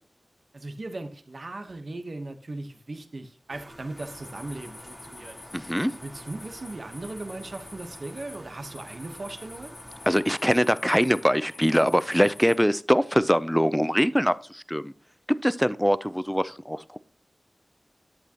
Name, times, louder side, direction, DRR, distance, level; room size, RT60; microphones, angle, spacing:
voice 1, 0.5-5.4 6.0-9.8, right 2 dB, 60° right, 1.1 m, -38 dB
sound 1, 3.5-10.1, equal, 20° right, 2.6 m, -49 dB
sound 2, 3.9-12.6, left 2 dB, 80° left, 2.0 m, -47 dB
voice 2, 5.5-5.9 10.1-14.9 15.3-17.0, equal, ahead, 0.5 m, -23 dB
11.0 x 8.4 x 2.9 m
wide cardioid pair, 70°, 0 cm